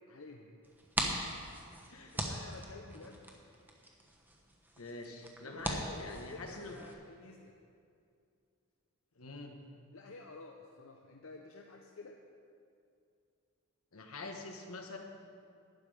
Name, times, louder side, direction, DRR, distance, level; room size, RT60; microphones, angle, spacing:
voice 1, 0.1-0.6 2.1-3.2 5.4-7.6 9.9-12.2, left 3 dB, 70° left, 2 dB, 0.7 m, -51 dB
sound 1, 0.6-6.9, right 1 dB, 10° right, 1.1 m, -41 dB
voice 2, 1.0-1.3 1.9-2.2 4.8-6.8 9.1-9.6 13.9-15.0, left 2 dB, 85° left, 3 dB, 1.3 m, -45 dB
12.0 x 9.2 x 5.0 m, 2.4 s
head